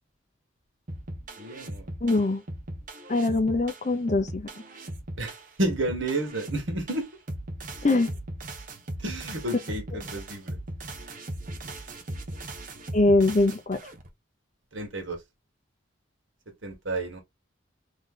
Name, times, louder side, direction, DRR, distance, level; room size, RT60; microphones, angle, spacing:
sound 1, 0.9-14.1, right 1 dB, 40° right, 1.0 m, -38 dB
voice 1, 1.4-1.9 5.2-7.1 9.0-10.6 14.7-15.2 16.6-17.2, right 1 dB, 70° right, 1.6 m, -31 dB
voice 2, 2.0-2.4 3.1-4.5 7.8-8.1 12.9-13.8, left 2 dB, 35° left, 0.7 m, -22 dB
3.7 x 3.2 x 3.8 m
head